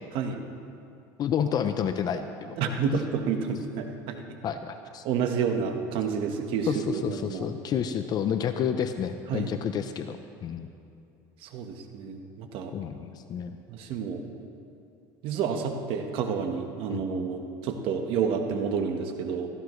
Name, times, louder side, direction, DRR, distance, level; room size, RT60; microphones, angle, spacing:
voice 1, 1.2-2.7 4.4-5.0 6.7-10.7 12.7-13.6 16.9-17.0, left 8 dB, 45° left, 8 dB, 0.6 m, -30 dB
voice 2, 2.6-4.2 5.0-7.5 9.3-9.5 11.4-12.7 13.7-14.2 15.2-19.5, right 6 dB, 65° right, 5 dB, 1.3 m, -29 dB
16.5 x 15.0 x 3.2 m, 2.6 s
supercardioid pair, 110°, 10 cm